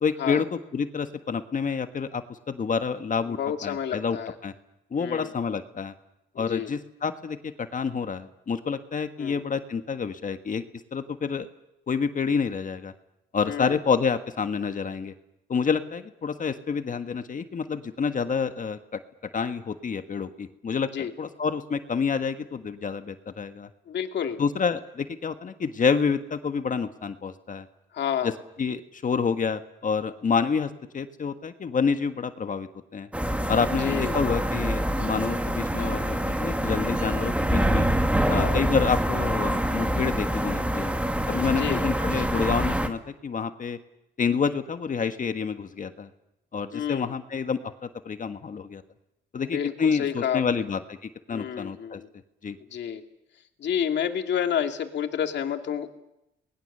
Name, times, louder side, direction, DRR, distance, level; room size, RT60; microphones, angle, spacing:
voice 1, 0.0-4.2 4.4-4.5 4.9-5.9 6.4-10.6 10.9-11.5 11.9-12.9 13.3-15.1 15.5-19.0 19.3-23.7 24.4-27.7 28.2-28.3 28.6-33.1 33.5-37.9 38.3-40.9 41.3-43.8 44.2-46.1 46.5-48.8 49.3-52.0 52.4-52.6, left 6 dB, 40° left, 9 dB, 1.5 m, -28 dB
voice 2, 3.3-4.3 5.0-5.3 6.4-6.7 9.2-9.4 13.5-13.7 20.9-21.1 23.9-24.4 27.9-28.3 33.8-34.1 38.3-38.6 41.6-41.8 46.7-47.1 49.4-50.4 51.3-52.1 52.7-53.0 53.6-55.9, left 8 dB, 60° left, 5 dB, 2.4 m, -29 dB
sound 1, 33.1-42.9, right 1 dB, 5° right, 2.0 m, -26 dB
28.5 x 20.5 x 6.8 m, 0.88 s
cardioid pair, 90°, 20 cm